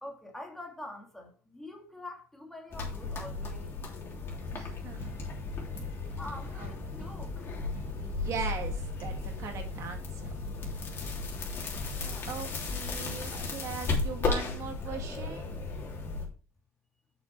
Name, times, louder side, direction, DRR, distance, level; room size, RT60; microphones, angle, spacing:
voice 1, 0.0-3.7 6.2-7.5 12.0-12.3, left 1 dB, 5° left, 2.5 m, -45 dB
sound 1, 2.7-16.3, left 4 dB, 40° left, 3.2 m, -35 dB
voice 2, 4.5-5.1 6.6-6.7 8.0-10.3 12.3-15.6, right 6 dB, 55° right, 2.0 m, -40 dB
sound 2, 5.0-13.0, right 2 dB, 35° right, 4.6 m, -48 dB
7.0 x 6.6 x 4.6 m
cardioid pair, 120°, 6 cm